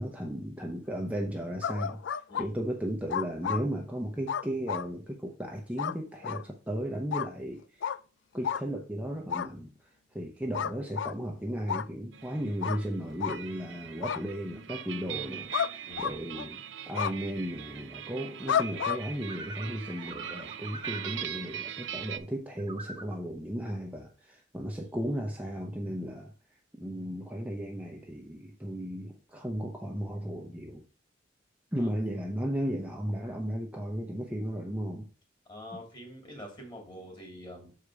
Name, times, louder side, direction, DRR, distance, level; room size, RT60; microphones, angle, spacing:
voice 1, 0.0-8.0 8.3-30.9 31.7-35.1, equal, 10° right, 0.8 m, -35 dB
sound 1, 1.6-2.5 3.1-3.6 4.3-4.9 5.8-5.9 6.2-6.4 7.1-7.3 7.8-8.0 8.4-8.6 9.3-9.5 10.5-11.1 11.7-11.9 12.6-12.8 13.2-13.4 14.0-14.2 15.5-15.7 16.0-16.5 16.9-17.1 18.5-19.0, left 8 dB, 80° left, 0.4 m, -31 dB
sound 2, 12.1-22.2, right 9 dB, 80° right, 0.6 m, -41 dB
sound 3, 19.3-21.2 22.6-23.2, right 2 dB, 25° right, 1.1 m, -44 dB
voice 2, 35.5-37.7, equal, 25° left, 2.8 m, -45 dB
6.6 x 4.9 x 4.8 m
head